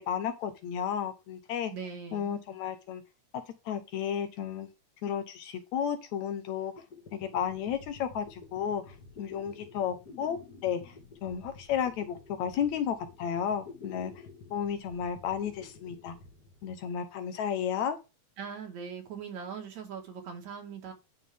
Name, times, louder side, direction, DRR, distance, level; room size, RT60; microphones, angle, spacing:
voice 1, 0.0-1.7 2.1-3.0 3.7-4.7 5.0-6.7 7.1-8.8 9.2-10.9 11.2-14.1 14.5-16.2 16.6-18.0, left 8 dB, 75° left, 8 dB, 2.2 m, -33 dB
voice 2, 1.7-2.3 18.4-20.9, right 6 dB, 70° right, 2 dB, 3.1 m, -40 dB
sound 1, 6.8-17.2, left 4 dB, 35° left, 2.0 m, -51 dB
11.0 x 4.1 x 3.5 m, 0.27 s
omnidirectional pair, 3.4 m